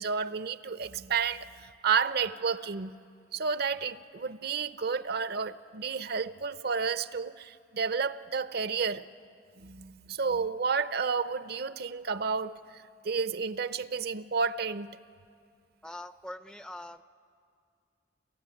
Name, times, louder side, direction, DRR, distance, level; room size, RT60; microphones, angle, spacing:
voice 1, 0.0-2.9 3.3-9.1 9.6-14.9, right 5 dB, 60° right, 0.6 m, -31 dB
voice 2, 15.8-17.0, left 1 dB, 5° left, 0.5 m, -43 dB
29.0 x 14.0 x 9.8 m
head